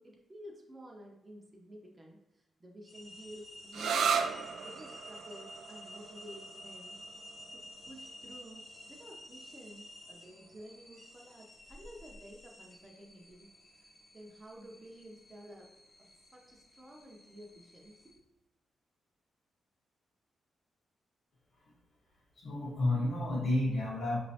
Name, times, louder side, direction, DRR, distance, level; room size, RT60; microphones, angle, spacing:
voice 1, 0.0-7.0 7.5-13.5 14.1-15.7 16.0-18.2, equal, 20° right, 0 dB, 0.6 m, -52 dB
sound 1, 2.8-18.2, left 1 dB, 20° left, 0.6 m, -52 dB
sound 2, 3.7-11.1, right 6 dB, 80° right, 0.3 m, -38 dB
voice 2, 22.4-24.2, left 2 dB, 60° left, -4 dB, 1.3 m, -31 dB
5.1 x 3.1 x 2.7 m, 0.87 s
wide cardioid pair, 145°, 0 cm